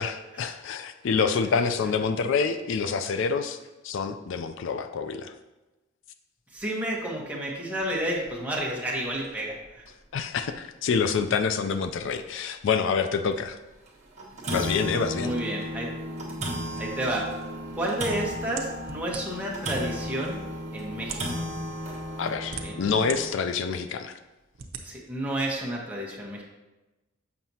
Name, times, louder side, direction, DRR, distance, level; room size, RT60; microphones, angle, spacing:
voice 1, 0.0-3.6 3.8-5.3 10.1-13.6 14.5-15.3 22.2-24.2, left 5 dB, 65° left, 9 dB, 0.4 m, -27 dB
voice 2, 6.5-9.8 15.2-15.9 16.8-17.3 17.8-20.4 20.7-21.3 22.6-22.7 24.8-26.4, right 1 dB, 5° right, -3 dB, 1.1 m, -31 dB
sound 1, 8.1-8.3 8.7-8.8 9.2-9.3 10.4-10.5 11.0-11.1 11.6-11.7 12.2-12.3 13.3-13.5 13.9-14.0 14.2-23.3, equal, 35° right, 1.2 m, -34 dB
sound 2, 18.6-19.5 20.3-20.4 21.0-21.3 22.1-23.2 23.7-23.8 24.5-24.9, right 7 dB, 70° right, 0.7 m, -38 dB
7.4 x 5.8 x 2.7 m, 1.1 s
head